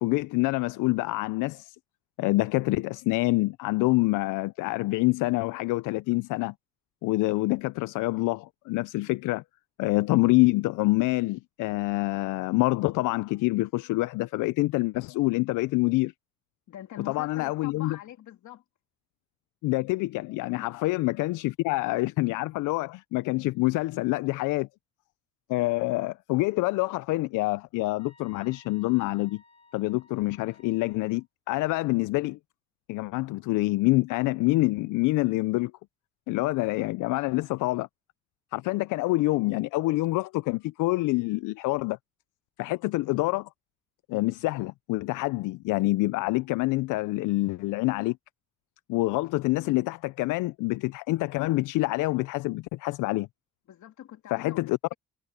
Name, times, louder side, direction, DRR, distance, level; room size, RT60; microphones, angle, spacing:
voice 1, 0.0-1.8 2.2-6.5 7.0-9.4 9.8-16.1 17.0-18.0 19.6-24.7 25.5-29.4 29.7-32.4 32.9-35.7 36.3-37.9 38.5-42.0 42.6-43.5 44.1-48.2 48.9-53.3 54.3-54.8, left 21 dB, 90° left, 0.5 m, -26 dB
voice 2, 16.7-18.6 20.6-20.7 53.7-54.9, left 12 dB, 75° left, 3.1 m, -44 dB
sound 1, 28.0-31.2, left 3 dB, 20° left, 1.8 m, -58 dB
cardioid pair, 90°, 30 cm